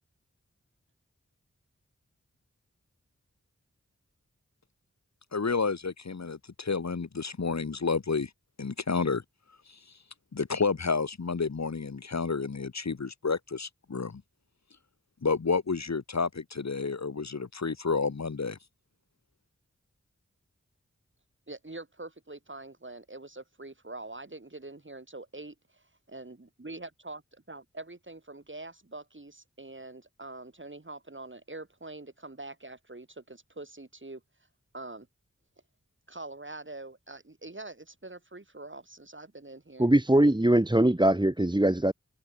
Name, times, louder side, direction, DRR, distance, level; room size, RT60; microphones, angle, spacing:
voice 1, 5.3-8.3 8.6-9.2 9.7-9.8 10.3-14.2 15.2-18.6, left 4 dB, 65° left, 1.4 m, -30 dB
voice 2, 21.5-25.8 26.1-26.4 26.6-27.2 27.5-34.2 34.7-35.1 36.1-39.9, right 2 dB, 40° right, 4.3 m, -44 dB
voice 3, 39.8-41.9, right 1 dB, 15° right, 1.6 m, -22 dB
wide cardioid pair, 45°, 30 cm